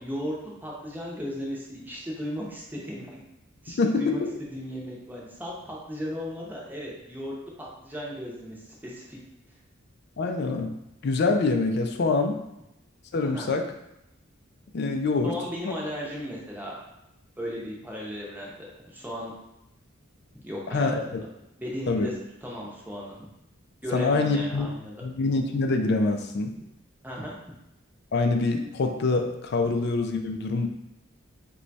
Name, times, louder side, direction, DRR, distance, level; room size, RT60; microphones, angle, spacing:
voice 1, 0.0-3.2 3.6-4.2 4.5-9.2 13.2-13.5 15.2-16.7 17.4-19.3 20.3-20.9 21.6-22.1 22.4-23.3 23.8-24.9 27.0-27.3, equal, 10° right, -4 dB, 0.7 m, -36 dB
voice 2, 3.7-4.2 10.2-12.4 13.1-13.6 14.7-15.4 15.6-15.7 20.7-21.0 21.9-22.1 23.9-24.7 25.0-26.6 28.1-30.7, left 3 dB, 50° left, 5 dB, 0.4 m, -25 dB
3.1 x 2.3 x 4.0 m, 0.88 s
head